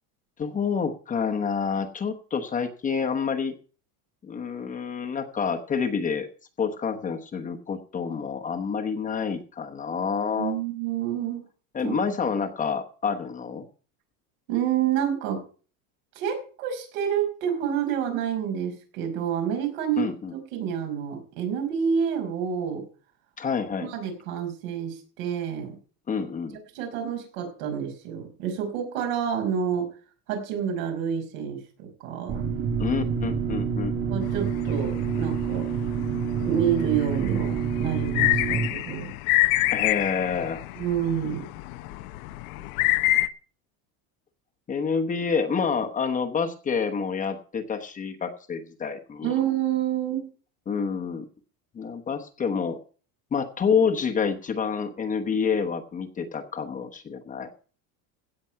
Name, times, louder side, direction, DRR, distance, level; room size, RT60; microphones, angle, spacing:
voice 1, 0.4-3.5 4.2-6.3 6.6-10.5 11.7-13.7 20.0-20.3 23.4-23.9 26.1-26.6 32.8-33.9 39.7-40.6 44.7-49.3 50.7-51.3 51.7-52.8 53.3-57.5, left 6 dB, 20° left, 4 dB, 1.1 m, -28 dB
voice 2, 10.4-11.4 11.8-12.0 14.5-15.4 16.2-22.8 23.8-25.8 26.7-29.9 30.3-32.4 34.1-35.7 36.4-39.1 40.7-41.5 49.2-50.2, right 8 dB, 75° right, 4 dB, 5.1 m, -28 dB
sound 1, 32.3-38.7, right 6 dB, 35° right, 2.7 m, -27 dB
sound 2, 34.2-43.3, left 18 dB, 85° left, 1.0 m, -28 dB
16.5 x 7.1 x 5.8 m, 0.39 s
cardioid pair, 165°, 41 cm